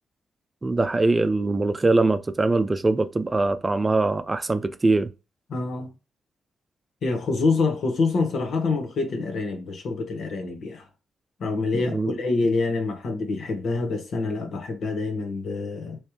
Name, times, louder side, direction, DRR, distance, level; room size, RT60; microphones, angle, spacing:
voice 1, 0.6-5.1 11.7-12.2, right 2 dB, 30° right, 0.5 m, -22 dB
voice 2, 5.5-5.9 7.0-10.8 11.4-16.0, left 3 dB, 70° left, 1.1 m, -26 dB
3.3 x 3.1 x 2.8 m
supercardioid pair, 55°, 0 cm